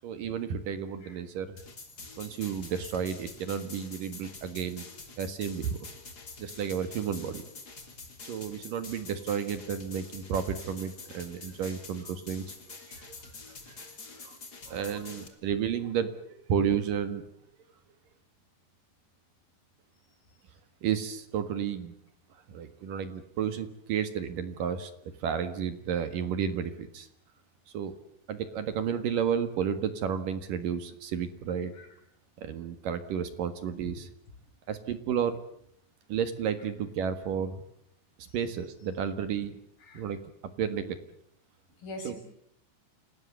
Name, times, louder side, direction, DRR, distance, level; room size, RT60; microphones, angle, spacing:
voice 1, 0.0-1.6 2.2-4.8 5.2-5.8 6.4-7.4 8.3-13.1 13.7-13.9 14.2-14.4 14.7-17.2 20.8-21.9 22.5-24.9 25.2-27.1 27.7-27.9 28.3-31.7 32.4-34.0 34.7-35.4 36.1-37.6 38.2-39.5 39.9-40.2 40.6-41.0 42.0-42.1, right 8 dB, 60° right, 11 dB, 2.9 m, -32 dB
sound 1, 1.6-15.3, left 3 dB, 25° left, 3.2 m, -47 dB
voice 2, 19.9-20.4 31.7-32.0 33.8-34.0 36.6-36.7 38.3-38.4 39.8-40.1 41.8-42.2, left 1 dB, 55° left, 3 dB, 8.4 m, -45 dB
28.5 x 19.0 x 8.3 m, 0.70 s
omnidirectional pair, 4.9 m